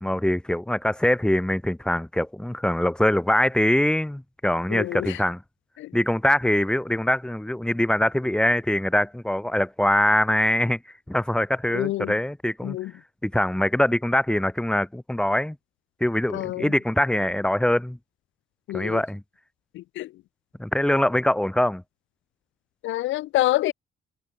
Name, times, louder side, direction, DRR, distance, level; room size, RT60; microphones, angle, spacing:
voice 1, 0.0-5.4 5.9-10.8 11.1-12.8 13.2-15.6 16.0-18.0 18.7-19.2 20.6-21.8, left 1 dB, 5° left, 1.3 m, -23 dB
voice 2, 4.7-5.2 5.8-5.9 11.7-12.1 12.6-12.9 16.3-16.7 18.7-19.0 19.7-20.1 22.8-23.7, left 16 dB, 75° left, 0.4 m, -27 dB
cardioid pair, 90°, 20 cm